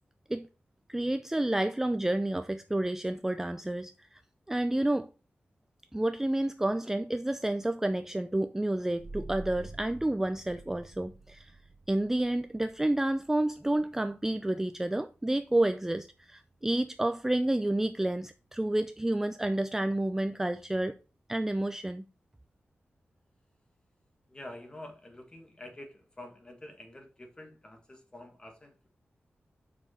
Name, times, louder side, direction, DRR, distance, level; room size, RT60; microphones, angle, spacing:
voice 1, 0.9-4.2 4.5-5.1 5.9-11.5 11.9-21.0 21.3-22.0, right 1 dB, 10° right, 0.4 m, -30 dB
sound 1, 9.0-20.2, right 2 dB, 55° right, 1.5 m, -51 dB
voice 2, 24.3-28.9, left 1 dB, 20° left, 1.8 m, -47 dB
7.3 x 5.8 x 4.3 m
wide cardioid pair, 150°, 4 cm